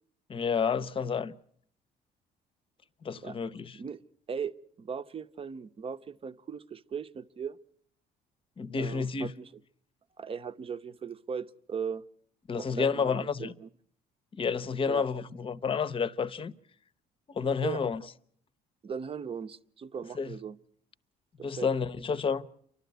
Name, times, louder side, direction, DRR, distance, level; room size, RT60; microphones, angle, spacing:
voice 1, 0.3-1.4 3.0-3.8 8.6-9.3 12.5-13.5 14.3-16.5 17.3-18.0 20.1-20.3 21.4-22.5, left 6 dB, 30° left, 0.8 m, -30 dB
voice 2, 4.8-7.6 8.8-9.5 10.2-12.0 12.6-13.7 14.8-15.0 17.6-17.8 18.8-20.6 21.4-21.7, right 6 dB, 35° right, 0.8 m, -38 dB
29.0 x 12.0 x 9.2 m
cardioid pair, 110°, 17 cm